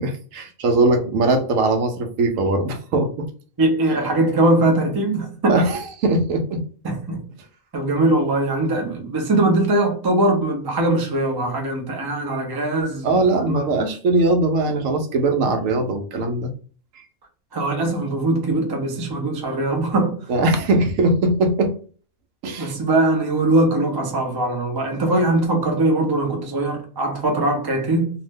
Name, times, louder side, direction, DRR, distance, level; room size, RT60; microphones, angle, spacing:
voice 1, 0.0-3.3 5.5-6.6 13.0-16.5 20.3-21.7 22.4-22.7, right 2 dB, 75° right, 1.0 m, -20 dB
voice 2, 3.6-5.6 6.8-7.2 7.7-13.6 17.5-20.2 22.6-28.1, right 2 dB, 30° right, 0.4 m, -21 dB
2.7 x 2.0 x 3.4 m
omnidirectional pair, 1.4 m